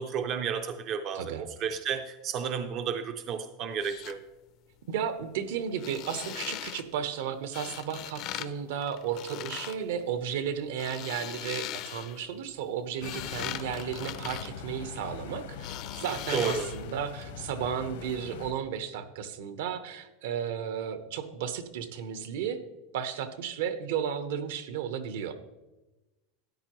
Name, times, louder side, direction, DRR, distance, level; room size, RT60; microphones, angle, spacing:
voice 1, 0.0-4.2 16.3-16.7, right 7 dB, 30° right, 8 dB, 0.4 m, -32 dB
sound 1, 3.7-4.1 5.7-6.8 7.5-8.5 8.8-9.8 10.6-12.2 12.7-15.2 15.6-16.9 17.2-17.3, left 13 dB, 35° left, 0.4 m, -39 dB
voice 2, 4.9-22.6 22.9-25.3, right 8 dB, 70° right, 10 dB, 0.9 m, -34 dB
sound 2, 13.0-18.5, left 7 dB, 65° left, 0.8 m, -42 dB
13.0 x 9.9 x 3.0 m, 1.1 s
supercardioid pair, 180°, 0 cm